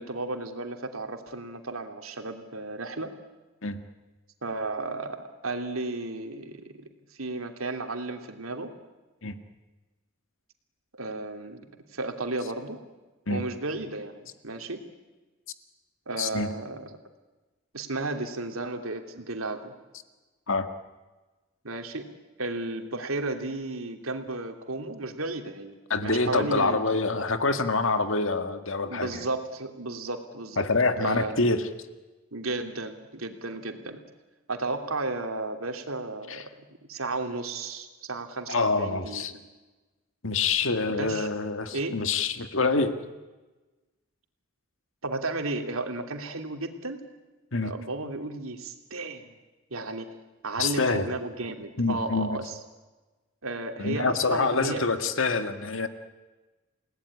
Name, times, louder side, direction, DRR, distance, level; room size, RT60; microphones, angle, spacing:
voice 1, 0.0-3.1 4.4-6.9 7.2-8.7 11.0-11.6 11.9-12.8 13.3-14.8 16.1-16.8 17.7-19.7 21.6-22.1 22.4-25.8 26.0-26.8 28.9-30.6 31.0-31.4 32.3-34.0 34.5-36.4 36.9-39.2 40.6-41.3 41.7-42.0 45.0-47.0 47.6-49.3 49.7-50.1 50.4-52.6 53.4-54.8, right 2 dB, 85° right, 5 dB, 3.0 m, -33 dB
voice 2, 16.2-16.5 20.5-20.7 25.9-29.2 30.6-31.7 36.3-36.4 38.5-39.3 40.2-43.0 47.5-47.7 50.6-51.1 51.8-52.4 53.8-55.9, left 3 dB, 70° left, 8 dB, 1.9 m, -26 dB
29.5 x 18.5 x 9.9 m, 1.2 s
head